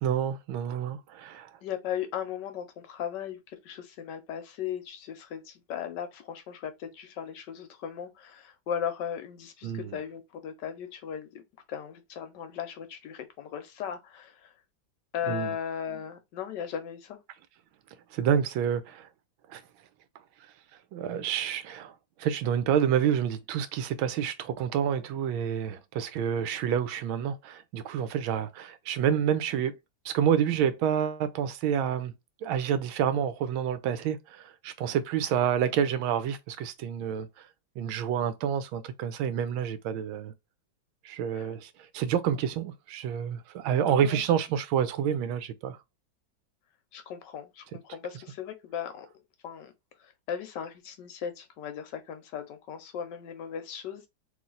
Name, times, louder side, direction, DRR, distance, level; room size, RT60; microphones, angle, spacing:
voice 1, 0.0-1.5 9.6-10.0 15.3-15.6 18.1-19.1 19.5-19.6 20.9-29.7 30.0-32.1 32.4-37.3 37.8-40.3 41.0-45.8, right 8 dB, 85° right, 1.4 m, -28 dB
voice 2, 1.6-11.4 11.7-14.5 15.1-17.2 41.3-41.5 43.8-44.3 46.9-49.1 49.4-49.7 50.0-54.1, left 8 dB, 75° left, 1.1 m, -37 dB
3.1 x 3.0 x 3.8 m
omnidirectional pair, 2.2 m